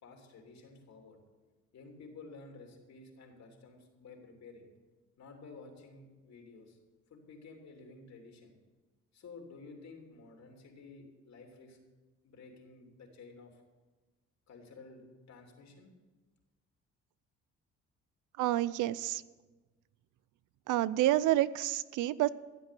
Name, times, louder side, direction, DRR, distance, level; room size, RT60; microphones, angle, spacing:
voice 1, 0.0-1.2 1.7-4.7 5.2-6.8 7.1-8.5 9.1-11.8 12.2-13.6 14.5-15.0 15.3-15.9, left 3 dB, 65° left, 2 dB, 3.3 m, -52 dB
voice 2, 18.4-19.2 20.7-22.3, right 14 dB, 85° right, 18 dB, 0.6 m, -29 dB
15.0 x 8.3 x 7.6 m, 1.3 s
cardioid pair, 90°, 30 cm